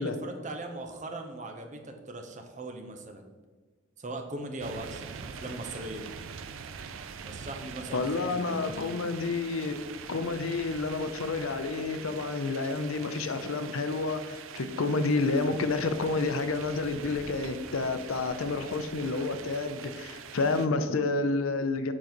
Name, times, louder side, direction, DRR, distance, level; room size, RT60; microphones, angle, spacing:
voice 1, 0.0-3.2 4.0-6.1 7.2-9.1, right 2 dB, 35° right, 4 dB, 0.7 m, -40 dB
sound 1, 4.6-20.7, right 6 dB, 75° right, 0.4 m, -44 dB
voice 2, 7.9-9.8 10.1-21.9, left 3 dB, 85° left, 9 dB, 0.6 m, -29 dB
7.5 x 4.0 x 4.4 m, 1.4 s
head